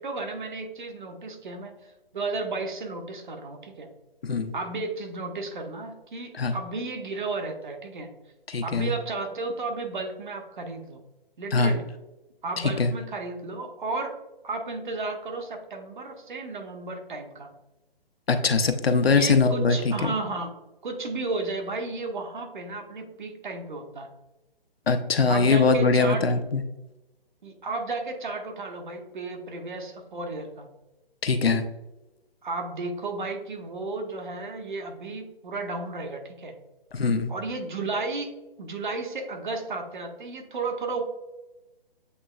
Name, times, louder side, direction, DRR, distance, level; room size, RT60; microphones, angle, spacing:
voice 1, 0.0-3.9 4.5-8.1 8.6-11.0 11.4-11.8 12.4-14.1 14.4-17.5 19.1-20.5 20.8-24.1 25.3-26.3 27.4-30.7 32.4-36.5 37.3-38.3 38.6-41.1, right 3 dB, 55° right, 4 dB, 1.0 m, -33 dB
voice 2, 8.5-8.9 11.5-11.7 12.8-12.9 18.3-20.1 24.9-26.6 31.2-31.6 36.9-37.3, left 4 dB, 80° left, 7 dB, 0.7 m, -22 dB
7.9 x 2.9 x 2.3 m, 1.0 s
figure-of-eight pair, 140°, 30 cm